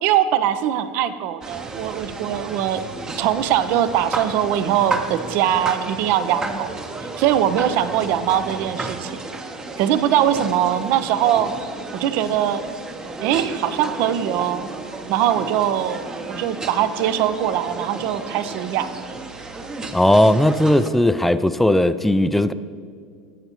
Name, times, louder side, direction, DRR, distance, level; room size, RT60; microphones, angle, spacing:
voice 1, 0.0-2.8 3.2-6.7 7.2-9.2 9.8-11.5 11.9-12.6 13.2-14.7 15.1-18.9, right 10 dB, 55° right, 0.5 m, -21 dB
sound 1, 1.4-20.9, right 3 dB, 20° right, 0.7 m, -33 dB
voice 2, 19.9-22.5, left 1 dB, 5° left, 0.3 m, -17 dB
12.5 x 7.9 x 3.0 m
hypercardioid pair, 90°, 4 cm